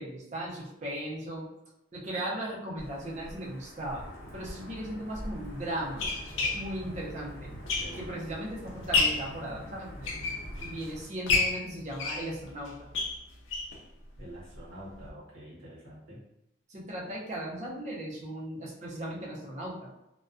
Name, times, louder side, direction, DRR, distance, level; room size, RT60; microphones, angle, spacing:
voice 1, 0.0-1.5 1.9-7.5 7.9-10.1 10.6-12.9 16.7-19.9, right 1 dB, 35° right, -4 dB, 0.6 m, -37 dB
Wind / Thunder / Rain, 2.8-11.0, equal, 50° left, 0.7 m, -45 dB
sound 1, 4.4-4.5 5.3-8.3 8.7-9.3 9.8-10.8 11.3-13.8 14.2-14.3 14.5-14.6 15.0-15.1, left 3 dB, 85° left, 0.5 m, -30 dB
voice 2, 7.7-8.2 14.2-16.2, equal, 85° right, -6 dB, 0.8 m, -46 dB
2.3 x 2.2 x 2.4 m, 0.87 s
head